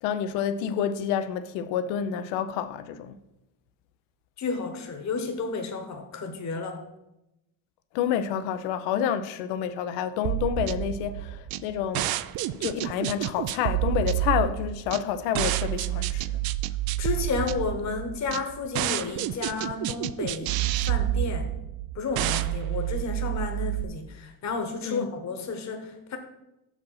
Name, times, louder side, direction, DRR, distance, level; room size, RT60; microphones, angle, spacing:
voice 1, 0.0-3.2 7.9-12.2 12.6-16.3 24.8-25.1, left 9 dB, 85° left, 0.7 m, -28 dB
voice 2, 4.4-6.8 17.0-20.6 20.8-21.5 21.9-26.2, left 4 dB, 40° left, 1.2 m, -32 dB
sound 1, 10.2-23.8, right 14 dB, 55° right, 0.5 m, -29 dB
6.1 x 5.2 x 5.7 m
supercardioid pair, 85°, 44 cm